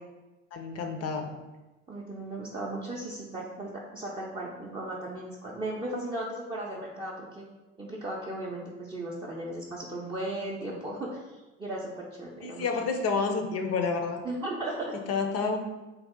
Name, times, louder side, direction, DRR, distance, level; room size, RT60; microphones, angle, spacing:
voice 1, 0.5-1.3 12.4-14.2 15.1-15.6, left 4 dB, 40° left, 4 dB, 0.6 m, -29 dB
voice 2, 1.9-7.5 7.8-12.9 14.2-15.0, right 1 dB, 15° right, -4 dB, 0.6 m, -36 dB
3.9 x 2.4 x 3.6 m, 1.1 s
figure-of-eight pair, 60°, 38 cm